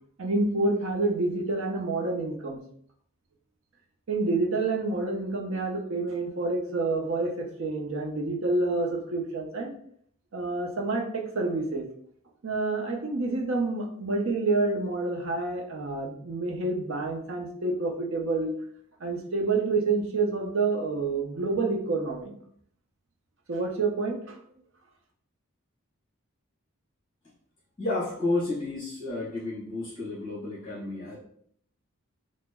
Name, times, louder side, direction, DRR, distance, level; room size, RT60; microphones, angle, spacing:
voice 1, 0.2-2.6 4.1-9.7 10.3-11.9 12.4-18.5 19.0-22.3 23.5-24.4, right 3 dB, 65° right, 2 dB, 0.6 m, -28 dB
voice 2, 27.8-31.2, left 2 dB, 25° left, -9 dB, 1.2 m, -31 dB
2.9 x 2.1 x 3.4 m, 0.63 s
head